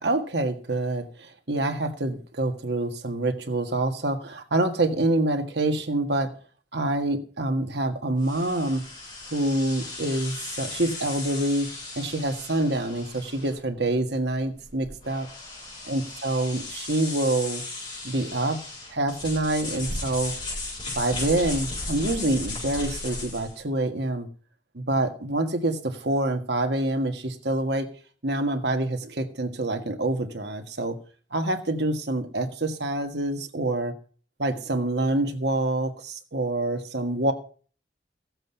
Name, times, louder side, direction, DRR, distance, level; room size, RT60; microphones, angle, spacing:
voice 1, 0.0-6.3 6.7-8.8 9.3-11.7 11.9-15.3 15.9-17.6 18.0-18.6 18.9-20.3 20.9-24.3 24.7-27.9 28.2-31.0 31.3-33.9 34.4-37.3, right 2 dB, 65° right, 6 dB, 1.7 m, -26 dB
sound 1, 8.2-23.6, left 2 dB, 25° left, 7.7 m, -36 dB
15.5 x 7.9 x 5.7 m, 0.42 s
head